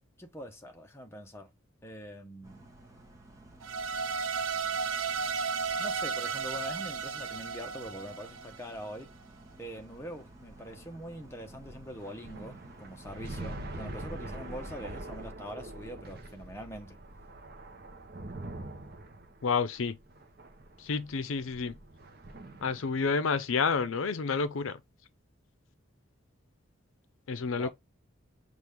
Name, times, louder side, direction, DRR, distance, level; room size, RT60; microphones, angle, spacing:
voice 1, 0.2-1.5 1.8-2.7 5.8-9.1 9.6-17.0 27.6-27.7, equal, 10° left, 0.8 m, -43 dB
sound 1, 2.4-15.3, right 2 dB, 15° right, 1.0 m, -54 dB
sound 2, 3.6-8.8, right 5 dB, 85° right, 0.5 m, -34 dB
sound 3, 9.6-23.2, right 1 dB, 50° right, 0.8 m, -44 dB
voice 2, 19.4-20.0 20.8-21.8 22.6-24.8 27.3-27.7, left 5 dB, 75° left, 0.5 m, -29 dB
6.1 x 2.5 x 3.4 m
head